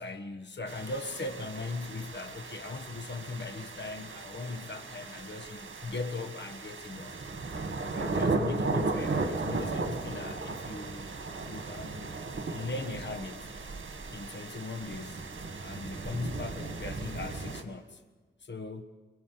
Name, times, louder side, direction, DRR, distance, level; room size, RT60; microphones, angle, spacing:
voice 1, 0.0-7.1 7.9-11.1 11.4-12.2 12.5-13.5 14.1-15.2 15.6-18.0 18.4-18.8, left 3 dB, 65° left, 1.3 m, -39 dB
sound 1, 0.7-17.6, right 3 dB, 75° right, 1.9 m, -36 dB
25.0 x 21.5 x 6.0 m
wide cardioid pair, 85°, 20 cm